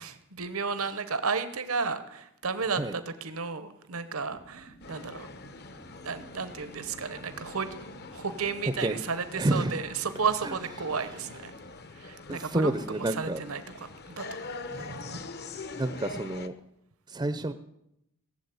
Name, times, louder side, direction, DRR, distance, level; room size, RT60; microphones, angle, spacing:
voice 1, 0.0-5.3 6.0-7.7 8.0-11.5 11.9-14.4 14.8-15.3, right 5 dB, 80° right, 12 dB, 1.0 m, -33 dB
sound 1, 4.2-11.7, right 1 dB, 70° left, 5.3 m, -53 dB
sound 2, 4.8-16.5, left 3 dB, 50° left, 0.9 m, -44 dB
voice 2, 9.4-9.8 10.4-10.5 12.3-13.4 14.7-14.9 15.7-16.5 17.1-17.5, right 1 dB, 20° right, 11 dB, 0.6 m, -29 dB
17.5 x 7.5 x 9.3 m, 0.80 s
head